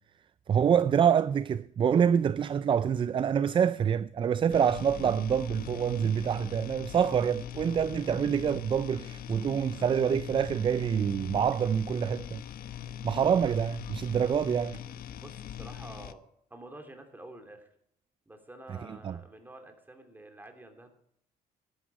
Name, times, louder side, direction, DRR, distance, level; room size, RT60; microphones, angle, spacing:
voice 1, 0.5-12.4 13.0-14.8 18.8-19.2, right 8 dB, 30° right, 0.4 m, -26 dB
sound 1, 4.5-16.1, left 9 dB, 60° left, 0.8 m, -42 dB
voice 2, 15.2-16.2 16.5-17.7 18.3-20.9, right 1 dB, 10° right, 2.9 m, -48 dB
14.5 x 12.0 x 4.7 m
cardioid pair, 110°, 17 cm